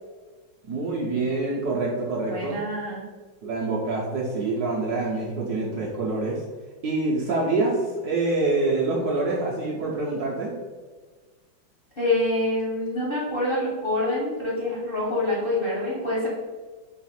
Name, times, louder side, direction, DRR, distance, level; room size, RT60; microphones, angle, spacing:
voice 1, 0.7-2.6 3.4-6.4 6.8-10.5, right 3 dB, 65° right, -4 dB, 1.0 m, -26 dB
voice 2, 2.3-3.0 12.0-16.3, left 1 dB, 55° left, -7 dB, 0.6 m, -26 dB
4.1 x 2.4 x 4.1 m, 1.4 s
omnidirectional pair, 2.2 m